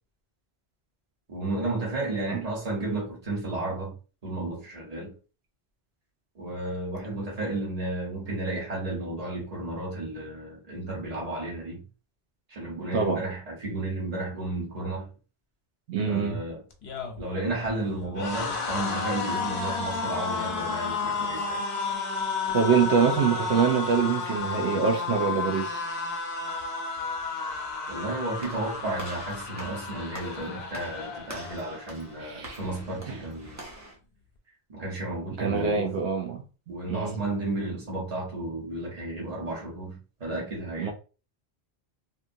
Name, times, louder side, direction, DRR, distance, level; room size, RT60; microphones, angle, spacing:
voice 1, 1.3-4.0 4.2-5.1 6.3-11.8 12.5-15.1 16.1-16.6 17.2-21.6 27.9-33.6 34.7-36.0 36.7-40.9, right 2 dB, 40° right, 1.1 m, -33 dB
voice 2, 15.9-16.4 22.5-25.8 32.2-32.6 35.4-36.4 36.9-37.2 40.8-40.9, right 6 dB, 85° right, 0.9 m, -25 dB
sound 1, 16.7-31.9 32.2-32.5 32.7-33.5, left 4 dB, 80° left, 0.9 m, -32 dB
Walk footsteps / Slam, 28.4-34.0, right 1 dB, 20° right, 0.7 m, -44 dB
2.8 x 2.3 x 2.6 m
omnidirectional pair, 1.1 m